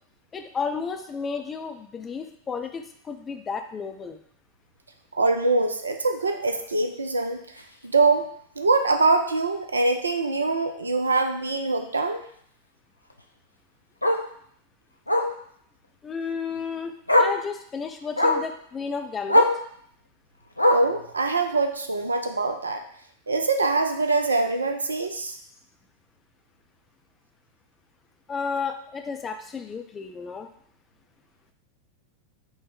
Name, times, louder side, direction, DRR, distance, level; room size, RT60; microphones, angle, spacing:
voice 1, 0.3-4.2 16.0-19.5 28.3-30.5, left 5 dB, 20° left, 6 dB, 0.4 m, -32 dB
voice 2, 5.1-7.4 7.8-8.3 8.6-12.2 20.7-22.8 23.3-25.4, right 3 dB, 75° right, 5 dB, 0.4 m, -23 dB
Bark, 7.6-7.7 8.1-8.3 8.6-8.7 9.0-9.1 10.5-10.6 13.1-13.2 14.0-14.3 15.1-15.4 16.6-16.7 17.1-17.4 18.2-18.5 19.3-19.6 20.6-21.0 22.0-22.1, left 1 dB, 85° left, 0.3 m, -21 dB
4.7 x 2.1 x 3.9 m, 0.64 s
figure-of-eight pair, 90°, 0 cm